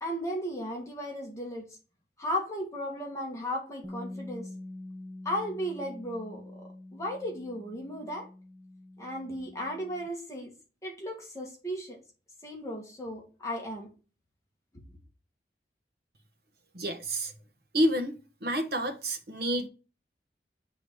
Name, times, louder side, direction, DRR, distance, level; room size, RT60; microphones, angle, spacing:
voice 1, 0.0-1.7 2.2-4.5 5.3-8.3 9.0-10.5 10.8-12.0 12.4-13.9, equal, 20° left, 1.7 m, -35 dB
Bass guitar, 3.8-10.1, left 1 dB, 5° right, 0.5 m, -45 dB
voice 2, 16.7-17.3 17.7-18.1 18.4-19.7, equal, 60° right, 1.2 m, -28 dB
8.4 x 3.9 x 4.7 m
head